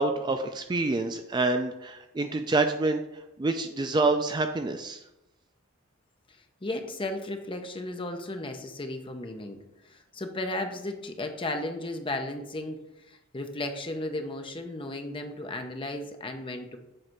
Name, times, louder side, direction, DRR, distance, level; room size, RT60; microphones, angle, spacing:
voice 1, 0.0-3.0 3.4-5.0, right 3 dB, 20° right, 6 dB, 0.3 m, -27 dB
voice 2, 6.6-9.6 9.8-16.8, left 2 dB, 25° left, 5 dB, 0.7 m, -35 dB
7.7 x 3.3 x 5.9 m, 0.90 s
head